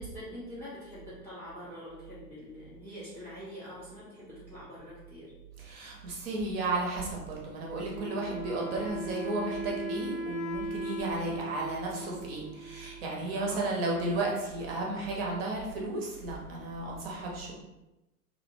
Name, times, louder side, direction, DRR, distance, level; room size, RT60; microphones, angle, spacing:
voice 1, 0.0-5.3 10.9-11.4 13.3-13.7, equal, 5° left, -14 dB, 0.4 m, -45 dB
voice 2, 5.6-17.5, right 2 dB, 40° right, -2 dB, 0.8 m, -33 dB
Wind instrument woodwind instrument, 7.9-13.4, right 1 dB, 60° left, 0.5 m, -38 dB
2.6 x 2.0 x 2.6 m, 0.98 s
figure-of-eight pair, 95°, 45 cm